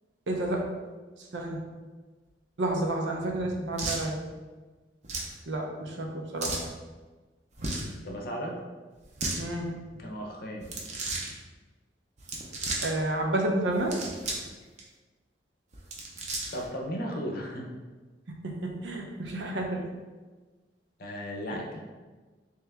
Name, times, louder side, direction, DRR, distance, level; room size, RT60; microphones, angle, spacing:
voice 1, 0.3-0.6 1.2-1.6 2.6-4.2 5.5-6.6 9.4-9.7 12.8-14.1 18.4-19.8 21.5-21.6, right 1 dB, 75° right, 1 dB, 0.6 m, -30 dB
sound 1, 3.8-4.1 5.0-5.3 6.4-6.7 7.5-7.9 9.0-9.4 10.6-11.3 12.2-12.9 13.7-14.5 14.8-14.9 15.7-16.7, right 2 dB, 40° right, 0.6 m, -34 dB
voice 2, 8.0-8.6 10.0-10.7 16.5-17.7 21.0-21.8, equal, 55° left, 0 dB, 0.7 m, -35 dB
3.3 x 3.1 x 3.5 m, 1.3 s
head